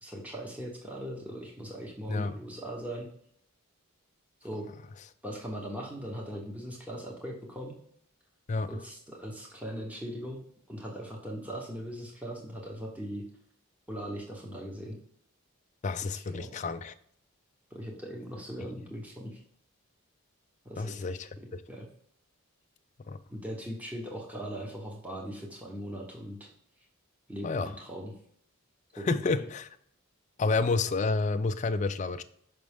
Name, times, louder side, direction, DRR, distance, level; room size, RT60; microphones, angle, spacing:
voice 1, 0.0-3.1 4.4-4.7 5.2-7.7 8.7-10.4 10.7-13.2 13.9-15.0 16.1-16.5 17.7-19.4 20.6-21.2 21.7-21.9 23.3-26.5 27.3-28.1 29.0-29.1 29.4-29.5, equal, 5° right, 0 dB, 0.9 m, -39 dB
voice 2, 15.8-16.9 20.8-21.3 23.1-23.2 27.4-27.7 28.9-29.7 30.4-32.2, left 3 dB, 35° left, 10 dB, 0.4 m, -29 dB
6.0 x 5.2 x 3.5 m, 0.67 s
head